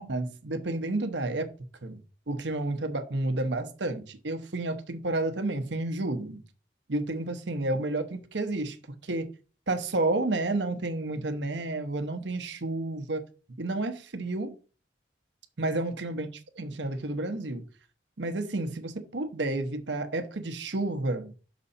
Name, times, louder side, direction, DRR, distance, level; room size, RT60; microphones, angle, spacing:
voice 1, 0.0-1.5 1.8-2.0 2.3-6.4 6.9-8.8 9.0-9.3 9.7-13.2 13.6-14.5 15.6-16.3 16.6-17.6 18.2-21.3, right 2 dB, 80° right, 0.9 m, -30 dB
6.1 x 4.2 x 5.4 m
head